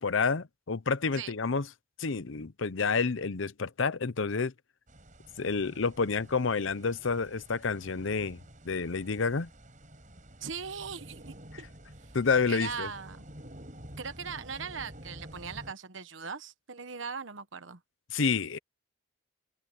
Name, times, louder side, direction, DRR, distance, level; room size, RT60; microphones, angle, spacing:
voice 1, 0.0-1.7 2.0-4.5 5.4-8.4 8.6-9.5 12.1-12.9 18.1-18.6, left 5 dB, 80° left, 0.7 m, -29 dB
sound 1, 4.9-15.7, right 1 dB, 40° right, 6.3 m, -50 dB
voice 2, 10.4-11.7 12.0-12.1 12.5-13.3 14.0-17.8, right 6 dB, 75° right, 1.1 m, -40 dB
open air
head